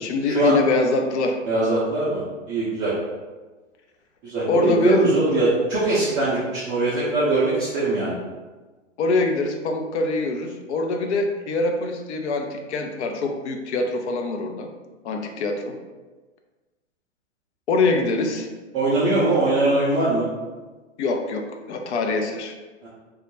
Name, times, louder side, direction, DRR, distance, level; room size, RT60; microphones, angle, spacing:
voice 1, 0.0-1.4 4.5-5.0 9.0-14.7 15.0-15.8 17.7-18.5 21.0-22.5, left 3 dB, 65° left, 4 dB, 0.5 m, -24 dB
voice 2, 1.5-2.2 2.5-2.9 4.2-8.2 18.7-20.3 22.8-22.9, right 2 dB, 20° right, -10 dB, 0.3 m, -21 dB
2.2 x 2.0 x 2.9 m, 1.3 s
hypercardioid pair, 115°, 38 cm